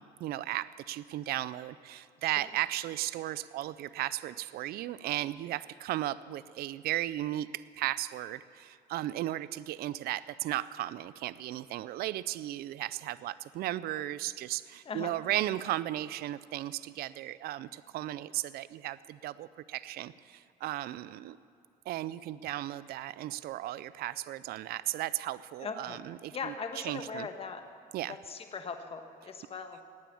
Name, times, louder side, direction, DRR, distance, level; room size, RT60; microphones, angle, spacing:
voice 1, 0.0-21.4 21.9-27.3 27.9-28.2, right 14 dB, 65° right, 17 dB, 0.4 m, -35 dB
voice 2, 14.8-15.2 25.6-26.0 26.3-27.6 28.1-29.8, left 5 dB, 35° left, 6 dB, 1.4 m, -40 dB
18.5 x 9.1 x 7.1 m, 2.5 s
cardioid pair, 110°, 17 cm